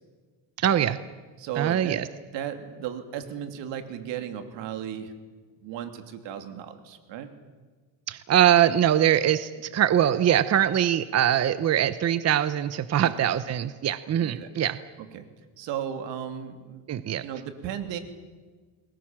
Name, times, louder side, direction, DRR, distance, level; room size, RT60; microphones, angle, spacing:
voice 1, 0.6-1.0 1.6-2.0 8.1-14.8 16.9-17.2, right 10 dB, 35° right, 13 dB, 0.9 m, -22 dB
voice 2, 1.4-2.0 2.3-5.1 5.6-7.3 12.9-13.3 14.2-14.5 15.1-15.3 15.6-16.8 17.2-18.0, right 9 dB, 80° right, 7 dB, 3.1 m, -35 dB
30.0 x 21.0 x 7.5 m, 1.4 s
cardioid pair, 135°, 43 cm